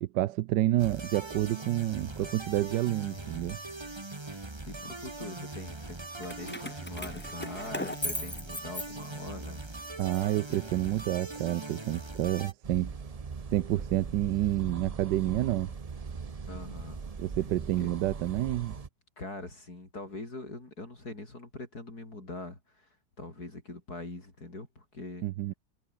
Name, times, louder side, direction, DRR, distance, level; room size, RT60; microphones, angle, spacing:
voice 1, 0.0-3.6 10.0-12.9 13.5-15.7 17.2-18.8 25.2-25.5, right 15 dB, 75° right, 1.3 m, -29 dB
sound 1, 0.8-12.5, right 2 dB, 15° right, 1.5 m, -41 dB
voice 2, 4.7-9.6 16.5-17.0 17.8-17.9 19.2-22.9 23.2-25.3, left 2 dB, 55° left, 6.1 m, -42 dB
Keys jangling, 6.2-9.4 9.8-11.1, left 1 dB, 10° left, 0.8 m, -38 dB
sound 2, 12.6-18.9, right 5 dB, 35° right, 0.6 m, -40 dB
omnidirectional pair, 2.0 m